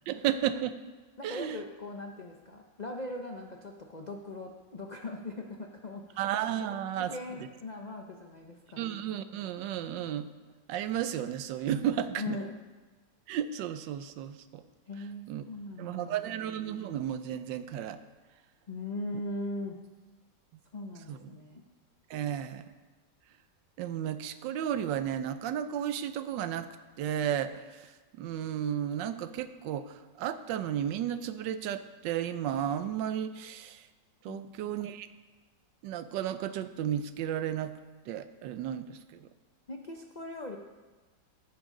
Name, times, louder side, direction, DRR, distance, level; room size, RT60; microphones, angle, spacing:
voice 1, 0.1-0.8 1.2-1.6 6.2-7.1 8.8-10.3 10.7-12.4 13.3-14.6 15.3-15.4 15.8-18.0 21.1-21.2 22.1-22.6 23.8-26.7 27.0-27.5 28.2-33.8 34.2-35.1 35.8-37.7 38.1-39.0, right 10 dB, 85° right, 12 dB, 1.3 m, -33 dB
voice 2, 1.2-6.3 6.7-8.9 12.2-12.6 14.9-16.3 18.7-19.8 20.7-21.6 34.3-34.7 39.7-40.6, left 2 dB, 75° left, 2 dB, 0.4 m, -40 dB
14.0 x 9.0 x 3.8 m, 1.3 s
omnidirectional pair, 1.9 m